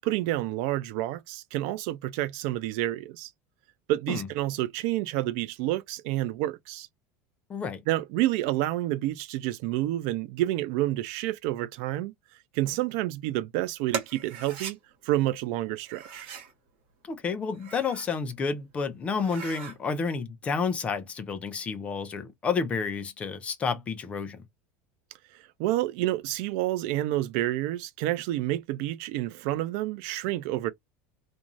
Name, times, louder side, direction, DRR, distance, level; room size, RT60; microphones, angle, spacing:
voice 1, 0.0-3.3 3.9-6.9 7.9-12.1 12.5-14.8 15.0-16.3 25.3-30.7, right 15 dB, 55° right, 0.4 m, -29 dB
voice 2, 7.5-7.8 17.0-24.4, left 5 dB, 20° left, 0.5 m, -30 dB
sound 1, 13.9-14.8 15.9-16.5 17.4-18.2 18.6-18.7 19.1-19.8, right 7 dB, 75° right, 1.1 m, -39 dB
2.5 x 2.3 x 2.9 m
cardioid pair, 170°, 7 cm